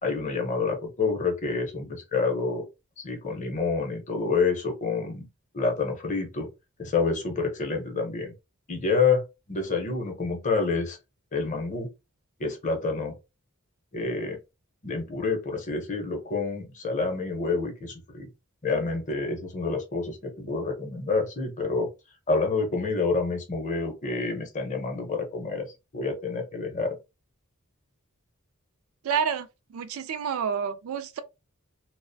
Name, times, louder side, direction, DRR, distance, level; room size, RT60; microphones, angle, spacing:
voice 1, 0.0-2.6 3.0-5.3 5.5-6.5 6.8-8.3 8.7-11.0 11.3-11.9 12.4-13.2 13.9-14.4 14.8-18.3 18.6-21.9 22.3-25.7 25.9-27.0, left 4 dB, 35° left, 0.6 m, -28 dB
voice 2, 29.0-29.5 29.7-31.2, right 7 dB, 70° right, 0.3 m, -28 dB
2.4 x 2.0 x 2.6 m
head